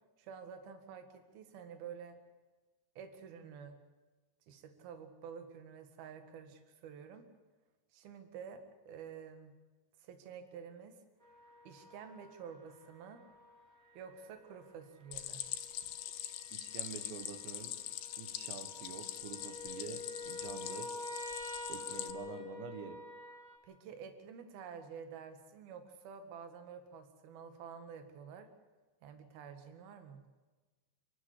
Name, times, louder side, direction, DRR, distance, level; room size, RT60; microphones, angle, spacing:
voice 1, 0.2-2.2 3.0-3.8 4.5-7.3 7.9-9.5 10.0-11.0 11.7-13.2 14.0-15.4 23.6-28.5 29.0-30.2, right 7 dB, 65° right, 7 dB, 3.6 m, -50 dB
sound 1, 11.2-23.6, left 2 dB, 20° right, 3.9 m, -49 dB
Stream, 15.1-22.1, left 12 dB, 90° left, 3.2 m, -43 dB
voice 2, 16.5-17.8 18.2-21.1 21.7-23.0, right 8 dB, 90° right, 8 dB, 3.7 m, -47 dB
29.0 x 13.0 x 8.5 m, 1.2 s
omnidirectional pair, 4.9 m